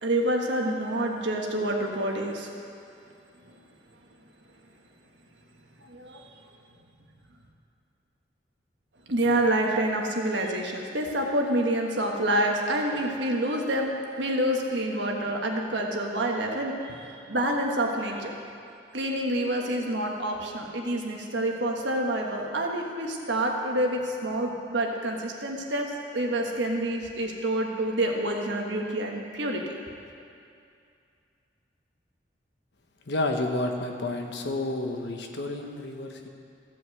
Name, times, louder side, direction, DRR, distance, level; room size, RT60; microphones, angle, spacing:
voice 1, 0.0-2.5 3.5-3.6 5.9-6.3 9.1-18.3 18.9-25.9 26.1-29.7, right 1 dB, 75° right, 1 dB, 1.4 m, -27 dB
voice 2, 33.1-36.3, left 2 dB, 65° left, 3 dB, 1.1 m, -30 dB
14.5 x 5.5 x 7.9 m, 2.5 s
head